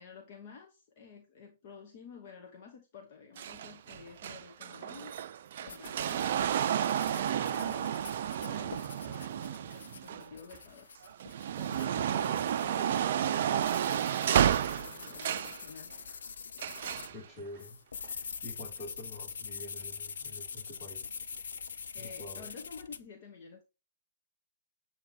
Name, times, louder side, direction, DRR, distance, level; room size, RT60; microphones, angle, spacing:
voice 1, 0.0-5.1 5.6-6.5 7.1-7.9 8.4-10.9 11.6-15.9 21.9-23.6, left 5 dB, 50° left, 1.1 m, -51 dB
sound 1, 3.4-10.6 11.0-15.6 16.6-17.1 18.0-18.1, right 9 dB, 55° right, 0.4 m, -31 dB
sound 2, 5.7-17.1 17.6-23.0, left 6 dB, 70° left, 0.5 m, -45 dB
voice 2, 17.1-21.1 22.0-22.5, left 1 dB, 20° left, 2.9 m, -47 dB
7.7 x 3.0 x 4.3 m
figure-of-eight pair, 115°, 0 cm